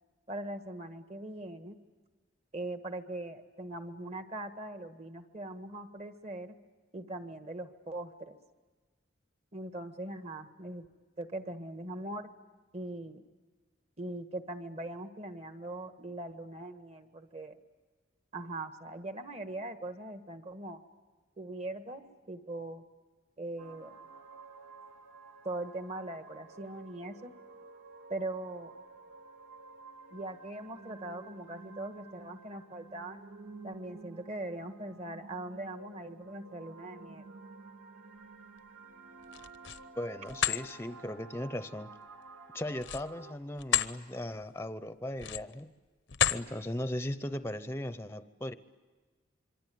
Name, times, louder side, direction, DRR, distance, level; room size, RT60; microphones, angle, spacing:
voice 1, 0.3-1.8 2.5-6.5 6.9-8.4 9.5-10.9 11.2-12.3 12.7-13.2 14.0-17.6 18.3-20.8 21.4-22.0 22.3-22.8 23.4-24.0 25.4-27.3 28.1-28.7 30.1-33.2 33.6-37.3, right 2 dB, 35° right, 9 dB, 1.6 m, -41 dB
sound 1, 23.6-43.4, right 3 dB, 90° right, 2.5 m, -51 dB
sound 2, 39.2-39.8 40.3-40.6 42.7-43.9 44.4-44.6 45.1-45.6 46.1-46.5, left 10 dB, 70° left, 0.8 m, -30 dB
voice 2, 40.0-41.9 42.5-45.7 46.3-48.5, left 1 dB, 15° left, 12 dB, 0.8 m, -37 dB
26.5 x 24.0 x 9.4 m, 1.3 s
head